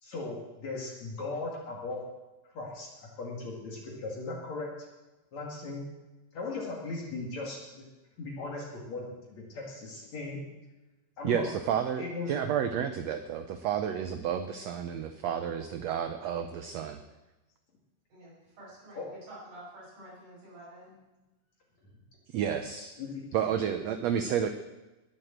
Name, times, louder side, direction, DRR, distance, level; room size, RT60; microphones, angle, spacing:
voice 1, 0.0-2.0 2.5-4.7 5.3-5.8 6.3-7.8 8.2-10.4 11.2-11.4 12.0-12.4 18.9-19.1 23.0-23.2, left 3 dB, 55° left, -2 dB, 3.3 m, -38 dB
voice 2, 11.2-17.0 22.3-22.9 23.3-24.5, right 8 dB, 80° right, 8 dB, 1.5 m, -31 dB
voice 3, 18.1-21.0, right 1 dB, 60° right, -8 dB, 7.1 m, -49 dB
20.0 x 7.9 x 7.5 m, 1.1 s
omnidirectional pair, 4.0 m